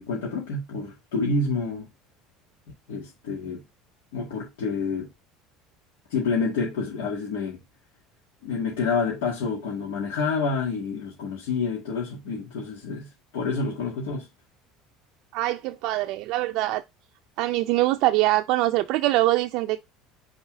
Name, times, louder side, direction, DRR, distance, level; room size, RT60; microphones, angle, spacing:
voice 1, 0.0-1.9 2.9-3.6 4.1-5.1 6.1-7.6 8.4-14.3, left 4 dB, 85° left, 2.2 m, -28 dB
voice 2, 15.3-16.8 17.4-19.8, right 17 dB, 70° right, 0.4 m, -23 dB
5.5 x 3.5 x 4.9 m
supercardioid pair, 110°, 0 cm